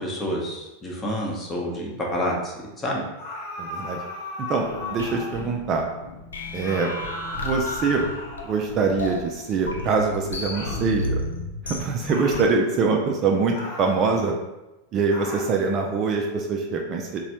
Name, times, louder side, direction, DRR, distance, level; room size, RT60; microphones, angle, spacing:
voice 1, 0.0-3.0, equal, 20° left, -1 dB, 0.8 m, -28 dB
sound 1, 3.2-5.5 6.6-8.9 10.5-10.9 12.1-12.5 13.5-14.0 15.1-15.6, left 2 dB, 40° left, 1.2 m, -36 dB
voice 2, 3.6-4.0 4.5-4.6 4.9-5.9 6.5-6.9 7.4-8.1 8.4-11.2 11.6-14.4 14.9-17.2, right 4 dB, 30° right, 1 dB, 0.4 m, -24 dB
sound 2, 4.6-12.5, left 2 dB, 70° left, 0.4 m, -33 dB
4.0 x 2.3 x 2.8 m, 1.0 s
figure-of-eight pair, 90°, 0 cm